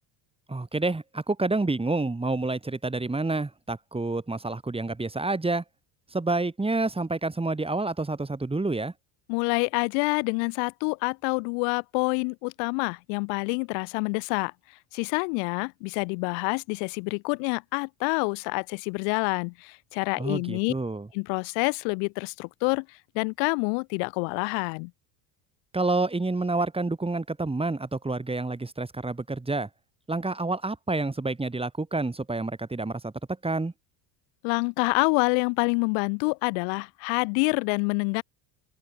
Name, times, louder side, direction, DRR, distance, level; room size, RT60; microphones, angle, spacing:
voice 1, 0.5-5.6 6.1-8.9 20.2-21.1 25.7-29.7 30.1-33.1 33.4-33.7, right 2 dB, 10° right, 4.1 m, -28 dB
voice 2, 9.3-14.5 14.9-20.7 21.1-22.9 23.1-24.9 34.4-38.2, left 40 dB or more, 85° left, 1.0 m, -27 dB
open air
cardioid pair, 120°, 49 cm